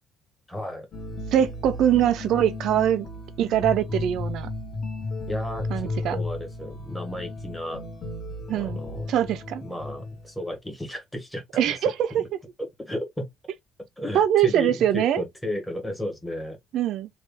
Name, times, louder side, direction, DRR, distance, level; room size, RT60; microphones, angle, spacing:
voice 1, 0.5-0.9 5.3-7.8 8.5-9.1 9.6-11.8 12.2-12.3 12.8-13.3 14.0-16.6, left 1 dB, 5° left, 1.2 m, -34 dB
sound 1, 0.9-10.5, left 2 dB, 35° left, 1.3 m, -34 dB
voice 2, 1.3-3.1 3.4-4.5 5.7-6.2 8.5-8.8 9.1-9.6 11.5-12.2 14.1-15.2 16.7-17.1, right 10 dB, 65° right, 0.5 m, -22 dB
3.2 x 2.4 x 3.3 m
cardioid pair, 155°, 0 cm